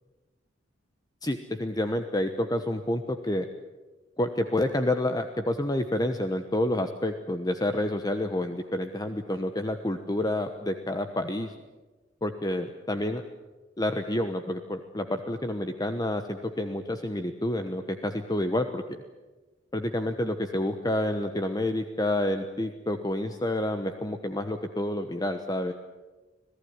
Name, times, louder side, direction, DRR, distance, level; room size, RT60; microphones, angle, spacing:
voice 1, 1.2-3.5 4.2-11.5 12.2-13.2 13.8-18.8 19.7-25.7, left 1 dB, 20° left, 7 dB, 1.1 m, -29 dB
26.5 x 17.5 x 9.6 m, 1.2 s
head